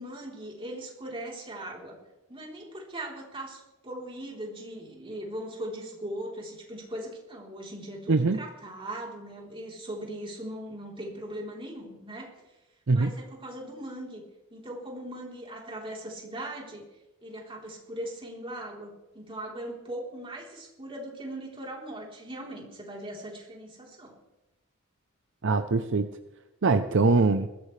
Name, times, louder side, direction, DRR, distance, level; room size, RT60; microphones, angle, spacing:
voice 1, 0.0-2.0 2.3-12.3 12.9-14.2 14.5-16.8 17.2-24.1, right 1 dB, 25° right, -2 dB, 3.7 m, -39 dB
voice 2, 8.1-8.4 12.9-13.1 25.4-26.1 26.6-27.5, right 3 dB, 65° right, 9 dB, 0.6 m, -22 dB
21.0 x 15.0 x 3.3 m, 1.0 s
head